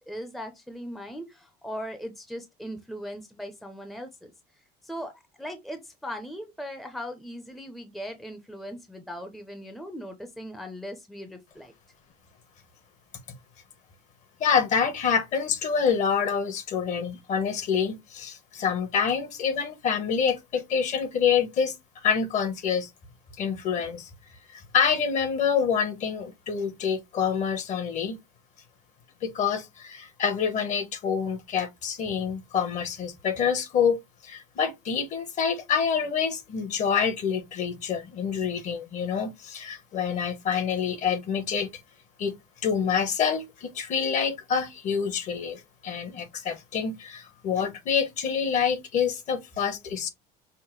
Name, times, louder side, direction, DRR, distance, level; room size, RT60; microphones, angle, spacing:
voice 1, 0.0-4.3 4.8-5.1 5.4-11.7, equal, ahead, 0.6 m, -39 dB
voice 2, 14.4-22.9 23.4-24.1 24.5-28.2 29.2-34.0 34.2-41.7 42.2-42.3 42.6-50.1, left 7 dB, 45° left, 1.1 m, -27 dB
5.6 x 2.1 x 3.1 m
cardioid pair, 130°, 17 cm